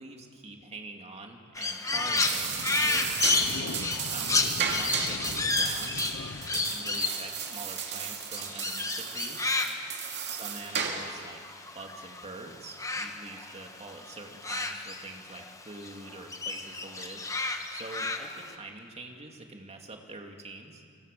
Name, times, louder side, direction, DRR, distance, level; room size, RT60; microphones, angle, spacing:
voice 1, 0.0-3.1 3.6-6.0 6.5-9.5 10.4-11.4 11.7-17.2 17.7-20.8, right 2 dB, 30° right, 2 dB, 2.6 m, -45 dB
Crow, 1.5-12.2 12.5-15.5 15.8-18.5, left 3 dB, 15° left, 1.5 m, -31 dB
sound 1, 1.8-8.6, left 3 dB, 55° left, 0.9 m, -42 dB
sound 2, 2.0-11.2, right 7 dB, 50° right, 2.6 m, -34 dB
29.5 x 24.0 x 6.9 m, 2.3 s
head